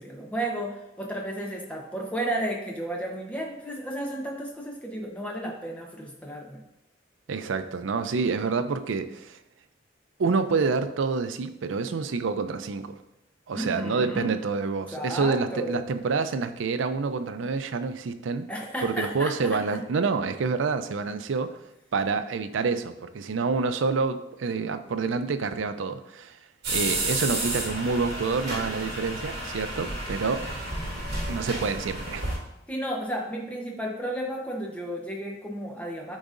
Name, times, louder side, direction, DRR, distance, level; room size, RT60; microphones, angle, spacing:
voice 1, 0.0-6.6 13.5-14.3 14.9-15.8 18.5-19.8 32.7-36.2, right 1 dB, 5° left, 0 dB, 0.9 m, -33 dB
voice 2, 7.3-9.4 10.2-12.9 13.5-18.5 18.8-21.6 21.9-26.4 26.7-30.5 31.3-32.3, right 4 dB, 80° right, 10 dB, 0.4 m, -27 dB
sound 1, 26.6-32.3, right 2 dB, 55° right, 2.2 m, -31 dB
10.0 x 4.0 x 2.5 m, 0.89 s
head